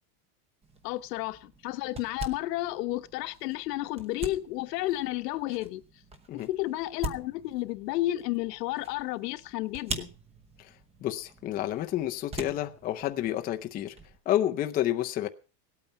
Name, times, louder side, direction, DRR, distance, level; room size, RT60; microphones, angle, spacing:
sound 1, 0.6-14.2, right 2 dB, 15° right, 0.9 m, -44 dB
voice 1, 0.8-5.8 6.3-10.1, left 16 dB, 85° left, 1.2 m, -32 dB
voice 2, 11.0-13.9 14.3-15.3, left 12 dB, 20° left, 0.6 m, -29 dB
18.0 x 8.8 x 5.6 m
supercardioid pair, 170°, 47 cm